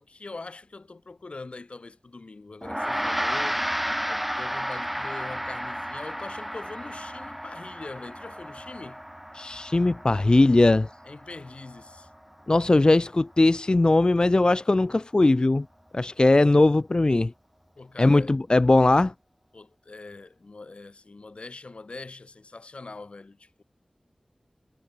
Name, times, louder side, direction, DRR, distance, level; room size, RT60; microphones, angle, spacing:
voice 1, 0.0-3.7 4.1-9.0 11.0-12.1 17.8-18.3 19.5-23.6, left 3 dB, 70° left, 2.2 m, -42 dB
Gong, 2.6-12.2, equal, 5° right, 1.5 m, -33 dB
voice 2, 9.4-10.9 12.5-15.7 15.9-17.3 18.0-19.1, left 2 dB, 45° left, 0.6 m, -20 dB
wide cardioid pair, 45°, 2 cm